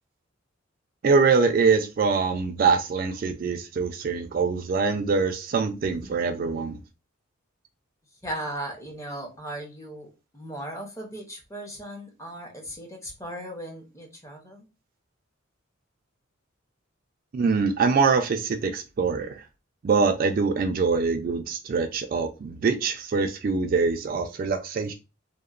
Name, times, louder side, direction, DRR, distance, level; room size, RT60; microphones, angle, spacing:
voice 1, 1.0-6.8 17.3-19.4 19.8-24.9, right 4 dB, 45° right, 0.3 m, -24 dB
voice 2, 8.2-14.7, right 1 dB, 15° left, 0.6 m, -37 dB
2.8 x 2.0 x 2.4 m
head